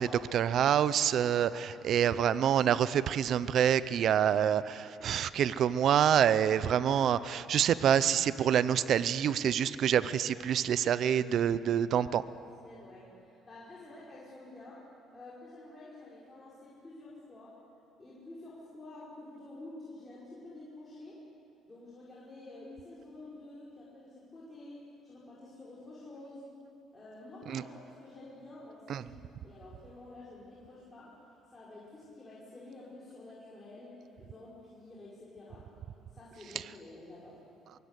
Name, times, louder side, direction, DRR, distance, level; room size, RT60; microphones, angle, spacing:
voice 1, 0.0-12.2 27.5-27.6 28.9-29.0, right 9 dB, 55° right, 15 dB, 0.7 m, -27 dB
voice 2, 12.6-14.9 15.1-17.6 18.0-21.3 21.6-26.5 26.9-29.1 29.4-31.2 31.5-35.7 36.1-37.4, left 2 dB, 20° left, -7 dB, 5.4 m, -49 dB
23.0 x 23.0 x 8.3 m, 2.9 s
cardioid pair, 120°, 0 cm